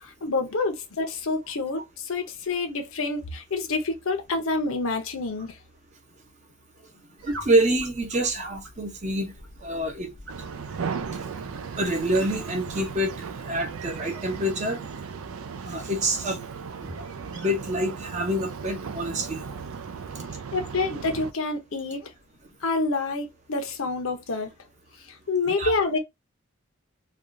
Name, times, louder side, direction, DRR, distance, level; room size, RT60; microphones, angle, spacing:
voice 1, 0.0-5.6 20.5-22.1 22.6-24.5 25.1-26.0, left 3 dB, 70° left, 0.7 m, -28 dB
voice 2, 7.2-9.3 9.6-10.1 11.8-14.8 15.6-16.4 16.8-16.9 17.3-19.4 20.1-20.2 25.6-25.7, right 1 dB, 35° right, 0.7 m, -26 dB
sound 1, 7.2-19.8, left 1 dB, 65° right, 1.2 m, -47 dB
sound 2, 10.3-21.3, right 6 dB, 80° right, 0.4 m, -36 dB
3.4 x 2.4 x 2.5 m
head